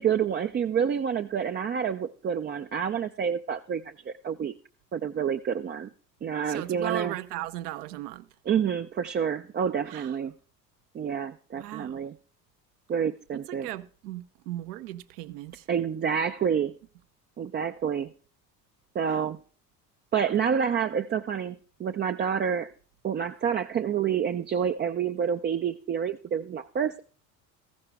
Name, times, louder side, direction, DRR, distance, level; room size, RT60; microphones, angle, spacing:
voice 1, 0.0-4.5 4.9-5.9 6.2-7.2 8.5-10.3 10.9-12.1 12.9-13.7 15.7-16.7 17.4-18.1 18.9-19.4 20.1-22.7 23.0-27.0, right 7 dB, 20° right, 0.4 m, -28 dB
voice 2, 6.5-8.3 9.9-10.1 11.5-12.1 13.3-15.6 19.1-19.2, right 15 dB, 70° right, 0.9 m, -37 dB
14.5 x 11.5 x 3.5 m
hypercardioid pair, 60°, 49 cm